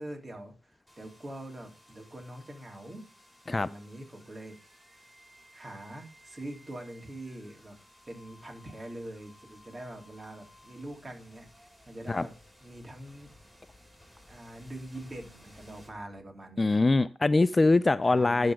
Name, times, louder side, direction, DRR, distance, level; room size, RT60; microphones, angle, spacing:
voice 1, 0.0-3.1 3.5-4.8 5.5-7.8 8.1-12.3 12.6-13.3 14.3-16.9 18.0-18.5, right 1 dB, 30° right, 2 dB, 3.0 m, -44 dB
sound 1, 0.9-16.7, left 1 dB, ahead, 4.4 m, -57 dB
voice 2, 16.6-18.5, left 3 dB, 30° left, 18 dB, 0.3 m, -23 dB
11.5 x 4.0 x 4.8 m, 0.36 s
hypercardioid pair, 40°, 0 cm